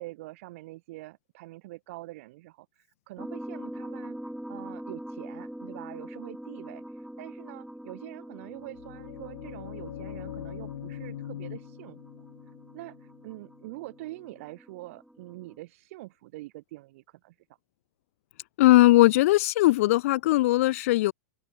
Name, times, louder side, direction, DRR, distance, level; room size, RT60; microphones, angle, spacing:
voice 1, 0.0-4.2 4.5-12.0 12.7-17.4, right 19 dB, 50° right, 3.3 m, -44 dB
sound 1, 3.2-15.6, equal, ahead, 1.2 m, -43 dB
sound 2, 8.5-14.3, left 11 dB, 70° left, 4.8 m, -42 dB
voice 2, 18.6-21.1, left 17 dB, 50° left, 0.4 m, -19 dB
supercardioid pair, 155°, 10 cm